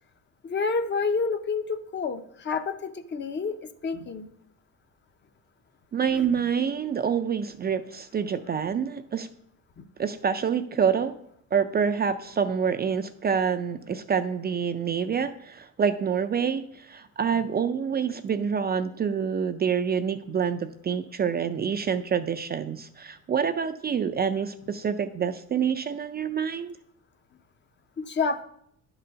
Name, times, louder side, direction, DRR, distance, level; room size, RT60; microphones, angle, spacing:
voice 1, 0.4-3.5 3.8-4.3 6.1-6.2 28.0-28.4, left 4 dB, 35° left, 10 dB, 0.6 m, -28 dB
voice 2, 5.9-9.3 10.0-11.1 11.5-26.8, right 7 dB, 30° right, 9 dB, 0.4 m, -27 dB
10.0 x 3.9 x 5.5 m, 0.72 s
cardioid pair, 125°, 32 cm